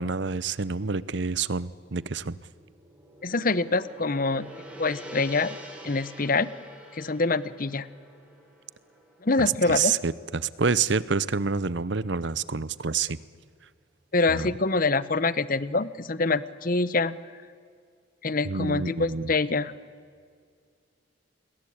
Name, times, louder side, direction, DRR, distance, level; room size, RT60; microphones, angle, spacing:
voice 1, 0.0-2.4 9.7-13.2 14.3-14.5 18.4-19.3, right 5 dB, 60° right, 19 dB, 0.8 m, -28 dB
Gong, 2.5-10.8, right 1 dB, 5° right, 4.2 m, -46 dB
voice 2, 3.2-4.5 4.8-5.6 5.8-6.5 6.9-7.9 9.2-9.9 14.1-17.2 18.2-19.7, left 3 dB, 45° left, 17 dB, 0.9 m, -25 dB
28.0 x 21.5 x 8.7 m, 2.1 s
head